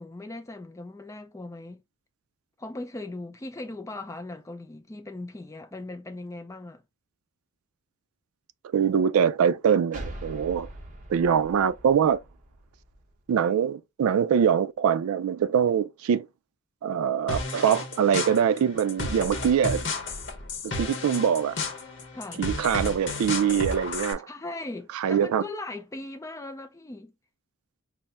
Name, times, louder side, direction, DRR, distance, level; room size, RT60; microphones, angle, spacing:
voice 1, 0.0-1.8 2.6-6.8 22.1-22.4 24.3-27.1, left 2 dB, 15° left, 0.4 m, -39 dB
voice 2, 8.7-10.7 11.1-12.2 13.3-16.3 16.8-19.9 20.6-21.6 22.4-24.3 24.9-25.4, right 8 dB, 80° right, 0.3 m, -23 dB
sound 1, 9.9-13.4, right 1 dB, 35° right, 0.8 m, -43 dB
sound 2, 17.3-24.1, left 3 dB, 55° left, 0.8 m, -33 dB
4.1 x 2.0 x 3.3 m
head